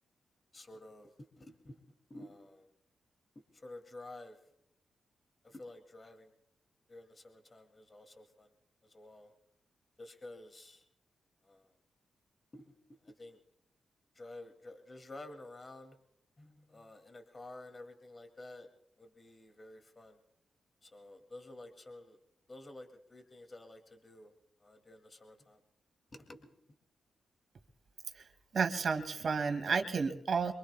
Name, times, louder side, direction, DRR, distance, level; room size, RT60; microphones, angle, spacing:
voice 1, 0.5-1.1 1.4-1.8 2.1-2.7 3.6-4.4 5.4-6.3 6.9-8.5 8.8-9.3 10.0-10.8 11.4-11.7 12.5-12.7 13.1-13.4 14.2-16.0 16.4-18.7 19.0-20.2 20.8-22.2 22.5-24.3 24.6-25.6 26.1-26.5, left 2 dB, 30° left, 5 dB, 2.4 m, -51 dB
voice 2, 28.5-30.5, right 5 dB, 60° right, 7 dB, 2.1 m, -31 dB
25.0 x 22.5 x 2.3 m, 0.77 s
cardioid pair, 65°, 0 cm